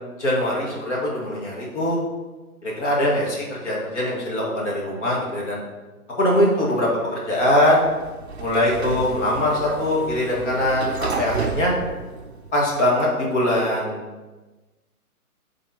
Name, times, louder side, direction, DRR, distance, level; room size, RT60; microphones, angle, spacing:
voice 1, 0.0-2.0 2.6-5.6 6.2-7.8 8.4-11.7 12.5-14.0, left 1 dB, 50° left, -3 dB, 1.9 m, -22 dB
Sliding door, 7.6-12.8, right 5 dB, 45° right, 0.5 m, -32 dB
6.8 x 3.7 x 4.2 m, 1.2 s
hypercardioid pair, 170°, 45 cm